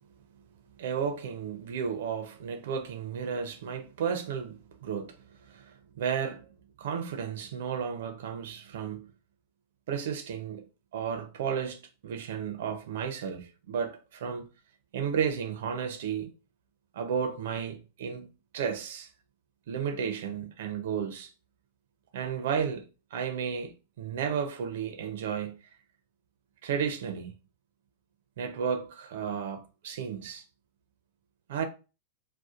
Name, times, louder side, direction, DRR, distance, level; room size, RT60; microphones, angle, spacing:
voice 1, 0.8-5.2 5.4-6.5 6.8-9.1 9.9-10.7 10.9-14.5 14.9-16.3 16.9-18.3 18.5-19.1 19.7-21.3 22.1-22.8 23.1-25.6 26.6-27.3 28.4-30.4 31.5-31.6, right 7 dB, 70° right, 0.5 m, -33 dB
2.7 x 2.1 x 2.4 m
supercardioid pair, 150°, 0 cm